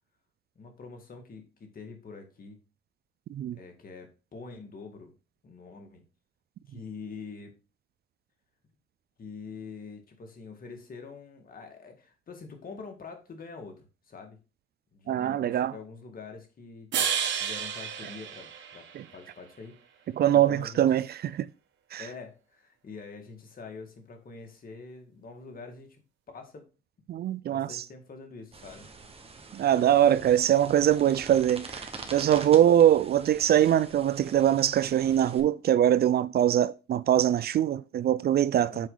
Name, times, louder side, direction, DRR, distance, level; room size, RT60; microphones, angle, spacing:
voice 1, 0.6-2.6 3.5-5.1 5.4-6.0 6.7-7.5 9.2-14.4 14.9-17.1 17.4-20.8 22.0-26.0 26.3-26.7 27.5-28.9 38.7-38.9, left 4 dB, 45° left, 2.0 m, -45 dB
voice 2, 15.1-15.7 18.9-19.0 20.2-21.5 21.9-22.1 27.1-27.8 29.5-38.9, right 11 dB, 55° right, 0.4 m, -23 dB
sound 1, 16.9-19.3, right 8 dB, 70° right, 1.2 m, -31 dB
sound 2, 28.5-35.4, right 4 dB, 30° right, 1.4 m, -45 dB
7.4 x 4.6 x 3.9 m
cardioid pair, 90°, 20 cm